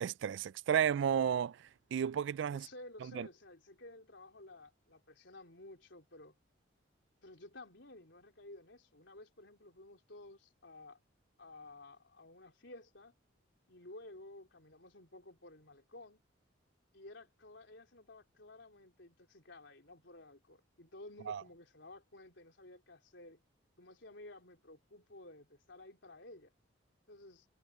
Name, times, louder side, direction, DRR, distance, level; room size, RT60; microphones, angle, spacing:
voice 1, 0.0-1.6 1.9-2.7 3.2-3.3 21.3-21.4, right 8 dB, 70° right, 0.3 m, -32 dB
voice 2, 2.5-6.4 7.2-11.0 11.4-13.1 13.7-16.2 16.9-23.4 23.8-26.5 27.1-27.5, left 2 dB, 70° left, 3.8 m, -54 dB
head